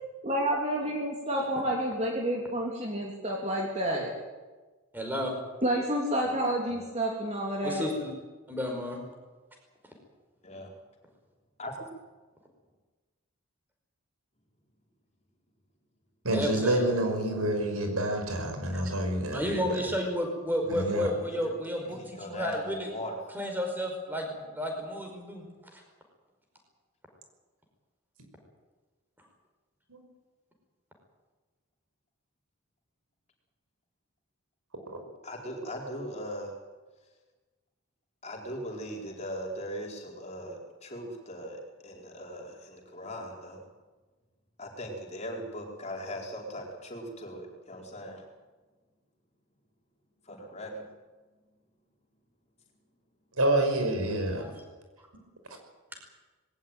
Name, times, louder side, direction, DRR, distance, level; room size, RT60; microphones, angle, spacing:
voice 1, 0.2-4.1 5.6-7.9, right 1 dB, 30° right, -1 dB, 3.1 m, -29 dB
voice 2, 4.9-5.3 7.6-8.1 8.5-9.0 16.3-16.9 18.7-18.8 19.3-22.9 23.3-25.8 54.1-54.5, equal, 10° right, 3 dB, 5.0 m, -32 dB
voice 3, 6.2-6.8 10.4-10.7 11.6-11.8 21.3-21.4 21.8-23.1 35.2-36.5 38.2-43.6 44.6-48.3 50.3-50.9, equal, 30° left, 0 dB, 4.4 m, -39 dB
voice 4, 16.2-19.8 20.7-21.1 29.9-30.0 34.9-35.0 53.4-54.5, right 1 dB, 90° right, 5 dB, 5.7 m, -28 dB
21.0 x 18.0 x 9.1 m, 1.3 s
head